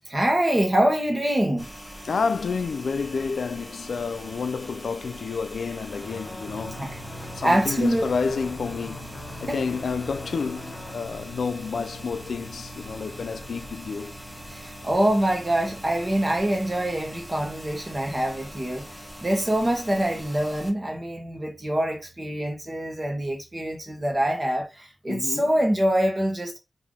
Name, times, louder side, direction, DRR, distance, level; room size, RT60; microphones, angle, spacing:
voice 1, 0.1-1.7 6.8-8.0 9.5-9.6 14.5-18.9 19.2-26.6, right 1 dB, 25° right, 1.2 m, -25 dB
sound 1, 1.6-20.7, equal, ahead, 0.9 m, -42 dB
voice 2, 2.0-6.8 7.3-9.1 9.4-14.2 25.1-25.4, left 5 dB, 85° left, 0.3 m, -29 dB
sound 2, 5.9-11.0, left 2 dB, 35° left, 0.8 m, -42 dB
sound 3, 6.4-24.1, equal, 80° right, 0.8 m, -47 dB
3.4 x 2.7 x 3.6 m
wide cardioid pair, 100°, 0 cm